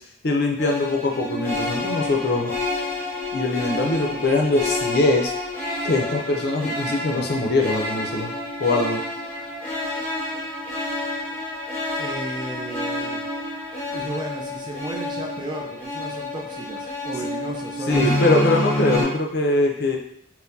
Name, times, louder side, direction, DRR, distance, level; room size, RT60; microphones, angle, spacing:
voice 1, 0.2-2.5 3.3-5.3 5.8-8.3 8.6-9.0 17.9-20.0, left 2 dB, 50° left, 1 dB, 0.5 m, -22 dB
sound 1, 0.6-19.0, left 1 dB, 10° left, 1.0 m, -28 dB
voice 2, 12.0-13.2 13.9-18.3, right 1 dB, 20° right, 0 dB, 0.4 m, -34 dB
4.3 x 2.1 x 2.6 m, 0.72 s
head